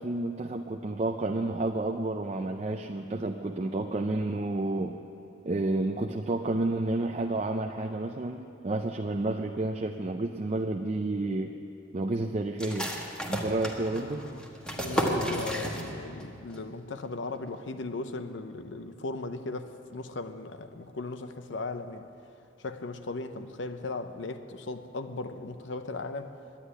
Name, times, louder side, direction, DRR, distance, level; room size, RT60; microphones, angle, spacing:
voice 1, 0.0-5.0 5.4-11.5 11.9-12.9 13.3-14.2, right 2 dB, 35° right, 0.5 m, -30 dB
sound 1, 12.6-16.2 16.5-16.6 17.0-17.5, equal, 5° left, 1.2 m, -32 dB
voice 2, 13.9-14.4 14.8-22.0 22.6-26.3, left 3 dB, 70° left, 0.7 m, -37 dB
10.0 x 9.9 x 10.0 m
head